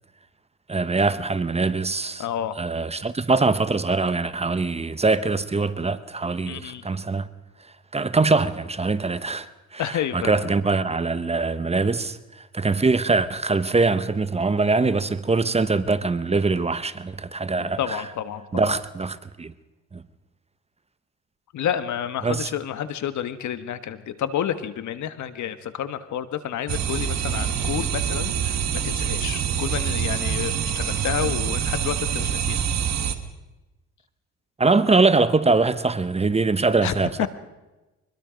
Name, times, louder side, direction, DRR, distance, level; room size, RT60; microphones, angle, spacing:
voice 1, 0.7-2.2 2.6-7.3 7.9-12.2 12.5-18.0 18.5-19.5 19.9-20.0 22.2-22.5 34.6-37.3, right 3 dB, 20° right, 0.9 m, -23 dB
voice 2, 2.2-2.6 6.5-6.8 9.8-10.5 17.8-18.7 21.5-32.6 36.8-37.3, left 10 dB, 70° left, 1.4 m, -30 dB
sound 1, 26.7-33.2, right 8 dB, 60° right, 1.6 m, -25 dB
24.0 x 21.5 x 5.2 m
cardioid pair, 90°, 30 cm